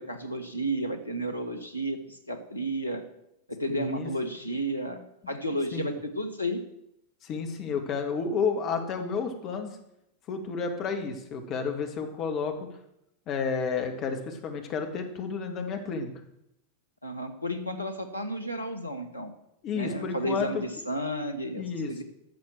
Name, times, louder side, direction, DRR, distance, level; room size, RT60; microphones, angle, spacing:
voice 1, 0.0-3.0 3.5-6.6 17.0-19.3 19.7-22.0, right 1 dB, 85° left, 7 dB, 1.3 m, -32 dB
voice 2, 3.7-4.1 5.2-6.0 7.2-9.8 10.3-12.7 13.3-16.1 19.6-20.8 21.5-22.0, left 5 dB, 35° left, 5 dB, 2.0 m, -31 dB
12.0 x 7.1 x 7.5 m, 0.81 s
figure-of-eight pair, 90°, 0 cm